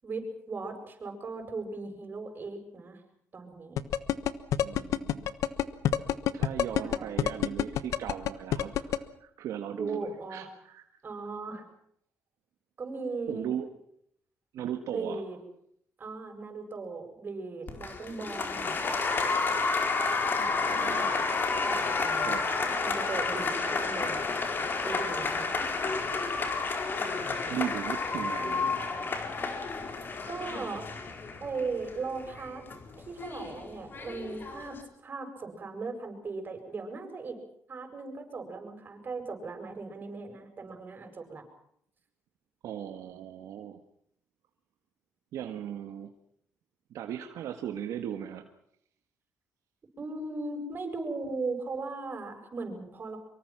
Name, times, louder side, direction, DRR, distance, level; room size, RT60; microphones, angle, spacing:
voice 1, 0.0-3.0 3.3-3.8 6.7-7.2 9.8-10.5 11.0-11.6 12.8-13.5 14.9-15.4 16.0-18.8 20.4-21.3 21.7-22.4 22.6-25.5 30.3-30.9 31.4-32.6 33.0-34.8 35.0-37.4 37.7-41.4 50.0-53.2, right 3 dB, 40° right, 5 dB, 7.7 m, -38 dB
sound 1, 3.8-9.0, left 11 dB, 80° left, 1.3 m, -26 dB
voice 2, 4.6-5.3 6.3-10.8 13.3-13.7 14.5-15.2 20.3-21.1 22.2-22.4 27.5-28.7 42.6-43.8 45.3-46.1 46.9-48.5, right 10 dB, 80° right, 7 dB, 1.7 m, -37 dB
Applause, 17.7-34.8, left 4 dB, 40° left, 4.4 m, -31 dB
25.0 x 24.0 x 6.1 m, 0.70 s
cardioid pair, 100°, 5 cm